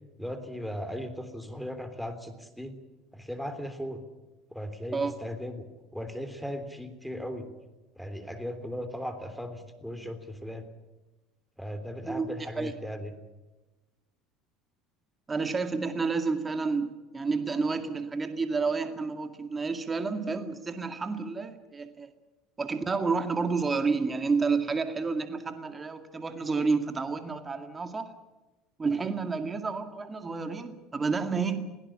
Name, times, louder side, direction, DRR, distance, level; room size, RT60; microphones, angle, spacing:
voice 1, 0.2-2.7 3.1-4.0 4.5-5.6 5.9-7.5 8.0-10.6 11.6-13.1, equal, ahead, 9 dB, 3.3 m, -37 dB
voice 2, 15.3-22.1 22.6-28.1 28.8-31.7, right 4 dB, 20° right, 7 dB, 2.1 m, -30 dB
22.0 x 17.0 x 8.7 m, 1.1 s
supercardioid pair, 100°, 0 cm